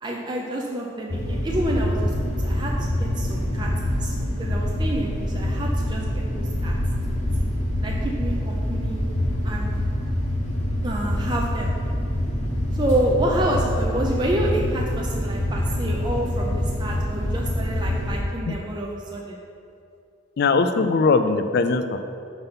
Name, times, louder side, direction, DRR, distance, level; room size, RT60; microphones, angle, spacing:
voice 1, 0.0-6.7 7.1-7.5 7.8-9.0 9.4-9.7 10.8-11.7 12.7-19.4, right 1 dB, 20° right, -2 dB, 0.4 m, -28 dB
sound 1, 1.1-18.2, left 1 dB, 35° left, 0.8 m, -25 dB
voice 2, 20.4-22.0, left 4 dB, 50° left, 9 dB, 0.3 m, -20 dB
5.5 x 4.0 x 5.2 m, 2.5 s
head